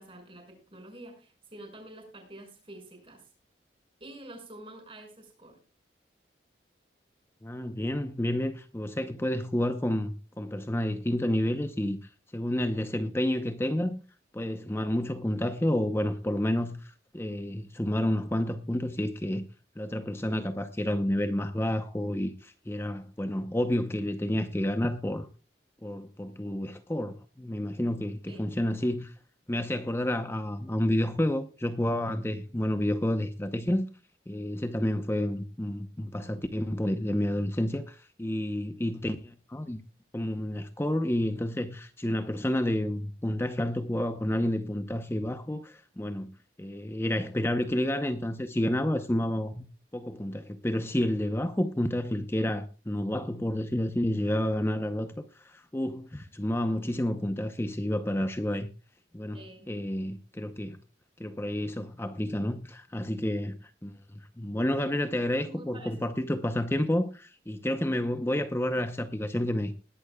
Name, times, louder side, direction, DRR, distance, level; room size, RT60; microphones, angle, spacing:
voice 1, 0.0-3.3 4.0-5.6 28.3-28.5 59.3-59.7 65.4-66.2, right 1 dB, 30° right, 5.7 m, -48 dB
voice 2, 7.4-14.0 14.3-19.4 19.8-25.3 25.8-29.1 29.5-33.9 34.3-39.8 40.1-46.3 46.6-49.6 49.9-58.7 59.1-59.4 59.7-60.8 61.2-69.7, left 1 dB, 15° left, 0.7 m, -30 dB
20.5 x 11.5 x 2.3 m
head